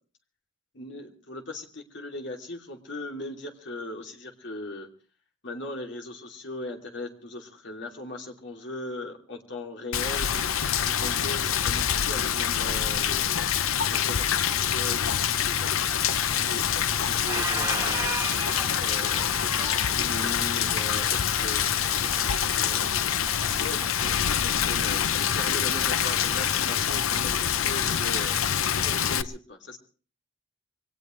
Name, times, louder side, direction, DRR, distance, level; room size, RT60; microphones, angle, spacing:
voice 1, 0.7-4.9 5.4-10.3 10.7-13.4 13.9-16.1 16.4-18.2 18.8-24.1 24.4-28.4 28.8-29.8, left 1 dB, 55° left, 2 dB, 2.8 m, -39 dB
Rain, 9.9-29.2, left 9 dB, 75° left, 0.7 m, -26 dB
Squeak, 16.3-16.8 17.1-24.7, right 3 dB, 15° right, 1.7 m, -37 dB
23.5 x 18.0 x 3.2 m, 0.40 s
head